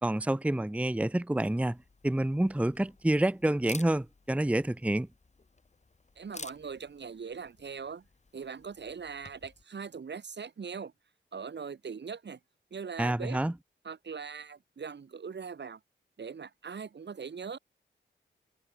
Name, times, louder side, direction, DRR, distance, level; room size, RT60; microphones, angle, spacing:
voice 1, 0.0-1.8 2.0-5.1 13.0-13.5, right 1 dB, 5° right, 0.7 m, -28 dB
Camera, 1.3-9.6, left 3 dB, 35° left, 1.3 m, -52 dB
voice 2, 6.2-8.0 8.3-10.9 11.3-12.4 12.7-13.4 13.8-15.8 16.2-17.6, right 6 dB, 60° right, 1.8 m, -41 dB
cardioid pair, 45°, 20 cm